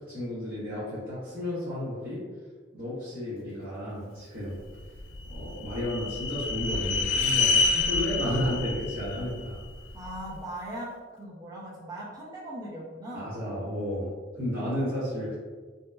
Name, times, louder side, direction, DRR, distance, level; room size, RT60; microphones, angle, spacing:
voice 1, 0.1-2.2 2.7-4.6 5.3-9.6 13.1-15.3, left 1 dB, 50° right, -11 dB, 0.8 m, -32 dB
sound 1, 5.0-10.2, left 4 dB, 75° left, 0.4 m, -28 dB
voice 2, 9.9-13.4, right 1 dB, 20° right, -6 dB, 0.6 m, -39 dB
2.7 x 2.1 x 2.2 m, 1.5 s
head